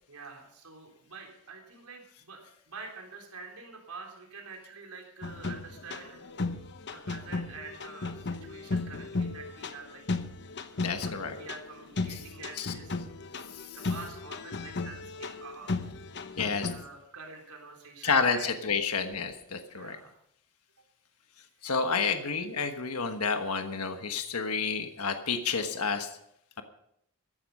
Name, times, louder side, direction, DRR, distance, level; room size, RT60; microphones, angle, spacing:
voice 1, 0.1-6.3 6.7-10.0 10.7-13.0 13.3-13.4 13.7-15.7 16.7-18.5 19.7-20.2 22.1-22.3, right 4 dB, 85° right, 1 dB, 3.7 m, -47 dB
sound 1, 5.2-16.8, left 3 dB, 50° left, 1.0 m, -35 dB
voice 2, 10.8-11.4 12.1-12.2 12.6-12.7 16.4-16.7 18.0-20.0 21.6-26.1, left 5 dB, 80° left, 6 dB, 1.3 m, -30 dB
15.0 x 11.0 x 5.4 m, 0.75 s
head